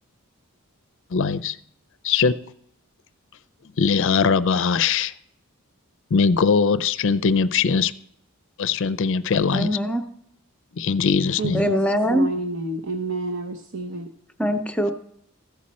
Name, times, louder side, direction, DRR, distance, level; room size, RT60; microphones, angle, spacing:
voice 1, 1.1-1.6 2.0-2.3 3.8-5.1 6.1-7.9 8.6-9.7 10.8-11.7, left 5 dB, 60° left, 14 dB, 0.5 m, -21 dB
voice 2, 9.5-10.0 11.5-12.3 14.4-14.9, equal, 5° left, 6 dB, 0.7 m, -22 dB
voice 3, 11.4-14.1, right 3 dB, 60° right, 6 dB, 0.7 m, -30 dB
15.0 x 6.4 x 4.2 m, 0.72 s
head